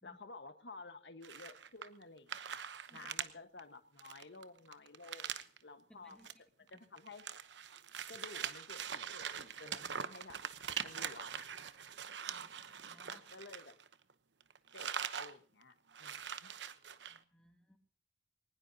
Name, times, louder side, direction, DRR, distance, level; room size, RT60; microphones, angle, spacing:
voice 1, 0.0-2.6 2.9-6.2 6.7-7.2 8.1-10.4 10.8-11.5 13.1-13.8 14.7-16.5, left 3 dB, 75° left, 9 dB, 1.4 m, -53 dB
sound 1, 1.2-2.0 2.3-3.3 3.6-3.7 4.0-5.6 6.1-6.3 6.7-14.1 14.4-15.3 15.6-15.7 15.9-17.2, right 8 dB, 80° right, 0.9 m, -43 dB
voice 2, 5.9-6.3 12.2-13.2 17.1-17.8, equal, 5° left, 3 dB, 2.5 m, -64 dB
21.5 x 19.5 x 2.8 m, 0.42 s
head